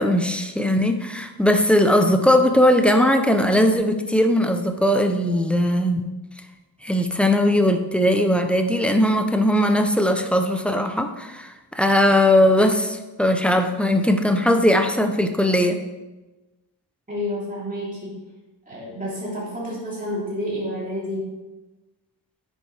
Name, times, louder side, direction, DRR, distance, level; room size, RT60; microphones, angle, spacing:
voice 1, 0.0-6.0 6.8-15.8, left 1 dB, 5° left, 5 dB, 0.5 m, -19 dB
voice 2, 17.1-18.1 18.7-21.3, left 1 dB, 20° right, -7 dB, 3.3 m, -29 dB
9.7 x 7.5 x 3.3 m, 1.1 s
wide cardioid pair, 165°, 44 cm